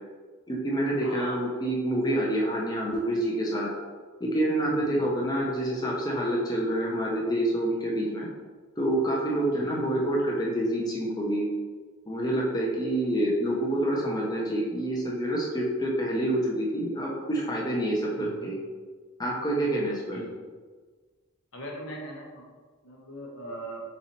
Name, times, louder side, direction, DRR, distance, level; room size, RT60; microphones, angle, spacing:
voice 1, 0.5-3.7 4.2-8.3 8.8-11.4 12.1-18.6 19.2-20.2, right 1 dB, 20° left, -3 dB, 0.5 m, -27 dB
voice 2, 1.0-1.4 4.9-5.1 9.5-9.7 18.1-18.5 20.1-20.3 21.5-22.5 22.8-23.8, equal, 80° left, -2 dB, 1.0 m, -40 dB
4.1 x 4.1 x 2.9 m, 1.5 s
head